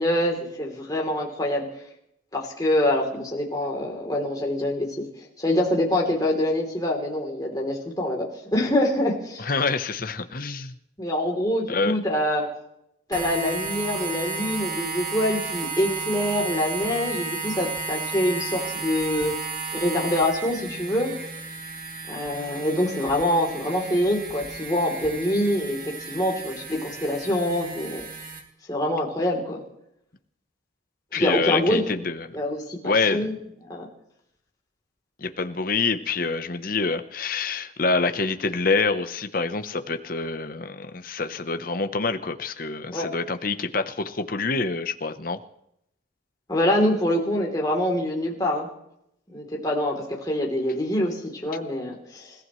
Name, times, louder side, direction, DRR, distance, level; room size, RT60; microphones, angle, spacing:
voice 1, 0.0-1.7 2.3-5.1 5.4-9.5 11.0-12.5 13.1-19.3 19.7-21.1 22.1-28.0 28.7-29.6 31.1-31.8 32.3-32.8 33.1-33.3 33.6-33.9 42.9-43.1 46.5-48.7 49.3-52.3, left 1 dB, 20° left, -2 dB, 3.3 m, -25 dB
voice 2, 9.4-10.7 11.7-12.0 31.1-32.4 32.8-33.3 35.2-45.4, left 4 dB, 45° left, 9 dB, 0.9 m, -26 dB
sound 1, 13.1-28.4, right 4 dB, 45° right, 2.6 m, -33 dB
28.5 x 15.5 x 3.2 m, 0.78 s
head